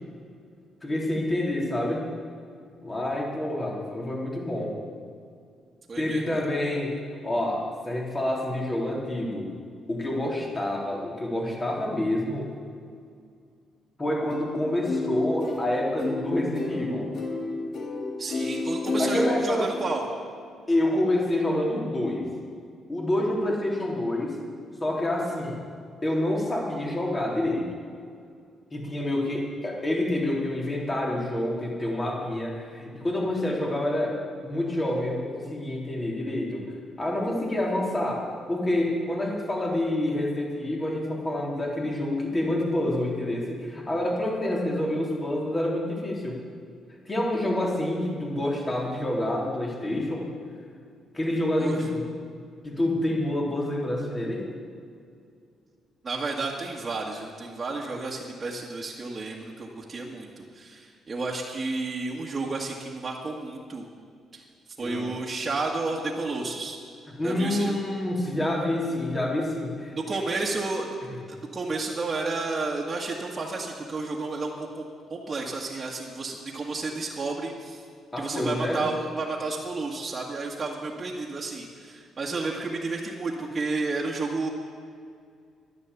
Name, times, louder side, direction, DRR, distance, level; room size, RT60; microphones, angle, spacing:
voice 1, 0.8-2.0 2.8-4.8 6.0-6.9 7.2-9.5 9.9-12.5 14.0-17.1 19.0-19.7 20.7-22.3 22.9-24.4 24.8-25.6 26.0-27.7 28.7-34.2 34.4-36.6 37.0-46.4 47.1-50.3 51.1-52.0 52.6-54.5 64.8-65.1 67.2-70.4 78.1-78.8, left 1 dB, 25° left, -2 dB, 3.6 m, -27 dB
voice 2, 5.9-6.4 18.2-20.1 51.6-51.8 56.0-63.9 64.3-64.4 64.8-66.8 67.2-67.8 70.0-71.0 71.3-74.8 75.1-77.8 78.2-84.5, right 3 dB, 30° right, -3 dB, 1.9 m, -31 dB
sound 1, 14.3-19.4, left 2 dB, 60° left, 2.3 m, -30 dB
11.5 x 11.0 x 8.3 m, 2.3 s
cardioid pair, 90°, 0 cm